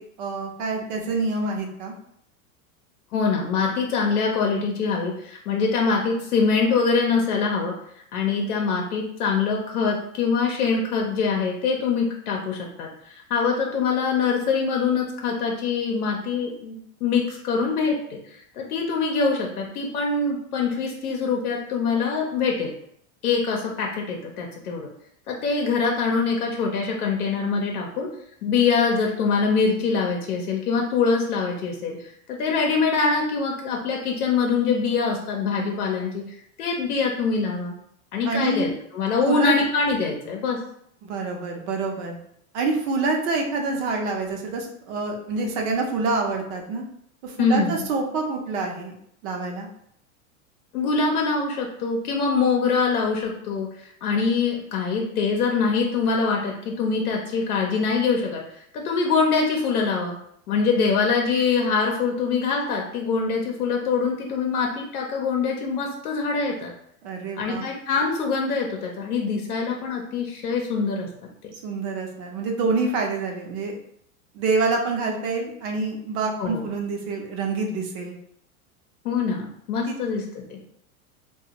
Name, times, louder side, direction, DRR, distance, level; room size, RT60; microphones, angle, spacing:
voice 1, 0.0-1.9 38.2-38.7 39.2-39.5 41.0-42.1 42.5-46.8 47.2-48.9 49.2-49.7 67.0-67.6 71.5-73.8 74.3-78.1 79.9-80.0, right 3 dB, 50° right, 1 dB, 0.7 m, -27 dB
voice 2, 3.1-7.7 8.1-18.2 18.6-22.7 23.2-24.9 25.3-28.1 28.4-32.0 32.3-36.2 36.6-37.7 38.1-40.6 47.4-47.9 50.7-58.4 58.7-60.1 60.5-66.7 67.4-71.1 76.4-76.6 79.0-80.6, left 5 dB, 90° left, 0 dB, 0.7 m, -24 dB
2.4 x 2.3 x 2.8 m, 0.70 s
hypercardioid pair, 120°, 43 cm